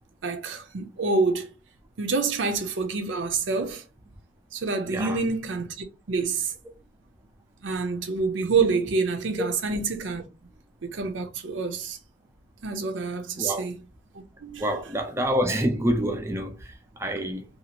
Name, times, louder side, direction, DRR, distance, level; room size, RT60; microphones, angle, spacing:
voice 1, 0.2-1.5 2.0-3.8 4.5-6.5 7.6-10.2 10.8-12.0 12.6-13.8 14.4-14.8, right 4 dB, 85° right, 0.6 m, -27 dB
voice 2, 14.6-17.5, equal, 15° right, 0.4 m, -27 dB
2.8 x 2.4 x 2.8 m
head